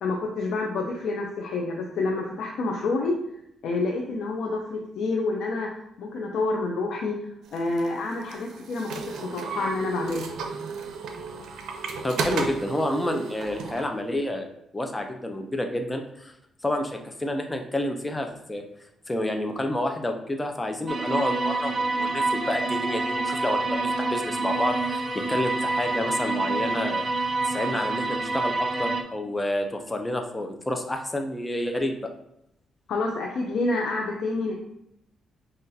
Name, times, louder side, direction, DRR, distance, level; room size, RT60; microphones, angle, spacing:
voice 1, 0.0-3.1 3.6-5.7 6.0-7.2 7.5-10.3 32.9-34.5, left 3 dB, 75° left, 0 dB, 0.5 m, -28 dB
sound 1, 7.5-13.9, right 5 dB, 80° right, 0.5 m, -33 dB
voice 2, 12.0-16.3 16.6-18.6 19.1-32.0, left 1 dB, 15° left, 4 dB, 0.6 m, -29 dB
sound 2, 20.9-29.0, right 3 dB, 35° right, 0.5 m, -27 dB
5.7 x 2.5 x 2.7 m, 0.78 s
cardioid pair, 85°, 0 cm